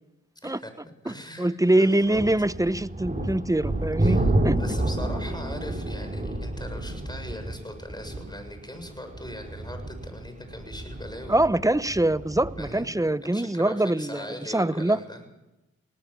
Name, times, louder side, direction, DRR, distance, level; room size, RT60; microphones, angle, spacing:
voice 1, 0.4-0.7 1.0-2.2 4.0-11.4 12.6-15.2, left 1 dB, 15° left, 6 dB, 7.0 m, -40 dB
voice 2, 1.1-4.6 11.3-15.0, right 1 dB, 10° right, 16 dB, 0.8 m, -24 dB
sound 1, 2.1-12.7, right 1 dB, 25° right, 5.4 m, -30 dB
19.5 x 19.0 x 7.3 m, 0.97 s
cardioid pair, 40°, 30 cm